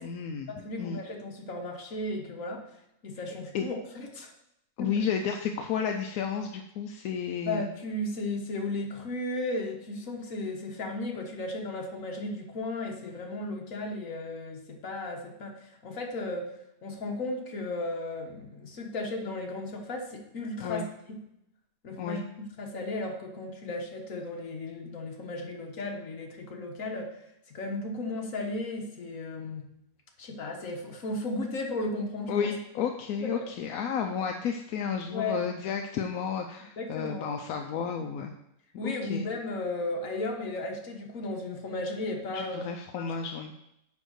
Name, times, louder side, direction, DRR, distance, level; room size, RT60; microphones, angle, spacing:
voice 1, 0.0-1.0 3.5-3.6 4.8-7.7 20.6-20.8 22.0-22.2 32.3-38.3 38.8-39.2 42.3-43.5, left 7 dB, 85° left, 4 dB, 1.1 m, -32 dB
voice 2, 0.6-2.6 3.0-4.3 4.8-4.9 7.5-16.5 16.8-20.8 21.1-21.2 21.8-22.2 22.6-27.2 27.5-29.7 30.2-32.5 33.2-33.5 35.1-35.4 36.8-37.3 38.8-42.6 43.0-43.1, left 2 dB, 65° left, 2 dB, 1.7 m, -35 dB
9.6 x 3.6 x 6.3 m, 0.80 s
omnidirectional pair, 1.5 m